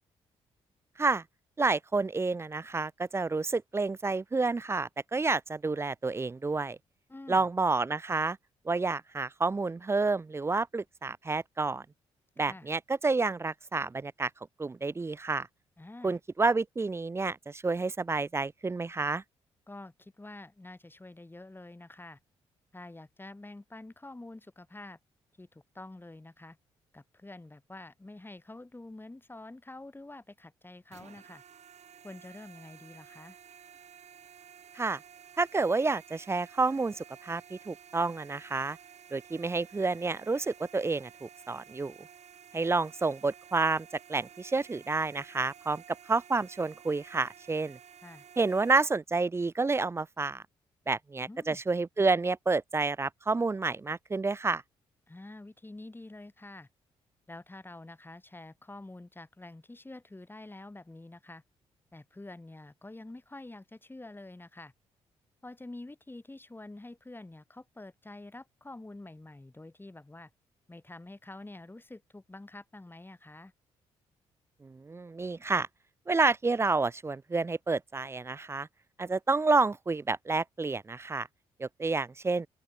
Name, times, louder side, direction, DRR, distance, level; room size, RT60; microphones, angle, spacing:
voice 1, 1.6-6.8 7.3-8.4 8.7-11.8 12.4-14.3 14.6-15.5 16.0-19.2 34.7-35.0 35.4-38.8 39.1-42.1 42.5-45.8 46.1-47.8 48.4-50.4 50.9-54.6 74.6-75.7 76.1-78.7 79.0-81.3 81.6-82.5, right 3 dB, 20° right, 0.4 m, -29 dB
voice 2, 7.1-7.5 12.5-12.7 15.8-16.2 19.7-22.2 22.7-25.0 25.4-26.6 26.9-31.4 32.0-33.4 48.0-48.3 51.3-51.6 55.1-56.7 57.3-61.4 61.9-64.7 65.4-70.3 70.7-73.5, left 2 dB, 15° left, 1.9 m, -47 dB
sound 1, 30.9-48.7, right 8 dB, 55° right, 1.7 m, -53 dB
open air
hypercardioid pair, 45°, 14 cm